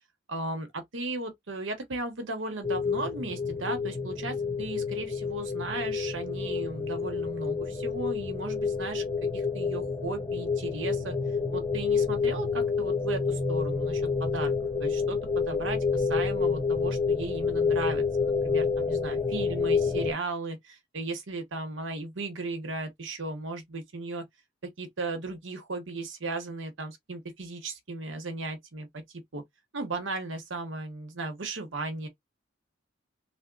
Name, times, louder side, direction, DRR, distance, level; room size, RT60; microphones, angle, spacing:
voice 1, 0.3-9.1 9.3-11.1 11.5-14.5 14.8-24.2 24.8-29.0 29.3-29.4 29.7-32.1, right 3 dB, 80° right, 1.0 m, -36 dB
sound 1, 2.6-20.1, left 5 dB, 15° left, 0.7 m, -28 dB
3.5 x 2.1 x 3.8 m
head